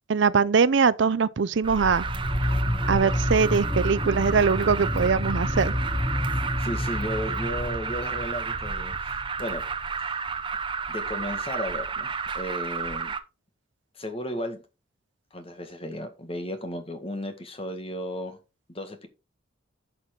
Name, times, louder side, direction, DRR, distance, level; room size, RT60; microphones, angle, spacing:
voice 1, 0.1-2.0 2.9-5.7, right 5 dB, 60° right, 0.5 m, -22 dB
Alarm, 1.6-13.2, right 5 dB, 25° right, 0.8 m, -32 dB
sound 1, 1.9-9.2, left 1 dB, 10° left, 0.4 m, -29 dB
voice 2, 6.3-9.6 10.0-10.2 10.9-13.1 13.9-14.6 15.3-18.4 18.7-19.1, equal, 30° left, 1.8 m, -35 dB
11.5 x 5.9 x 3.8 m
head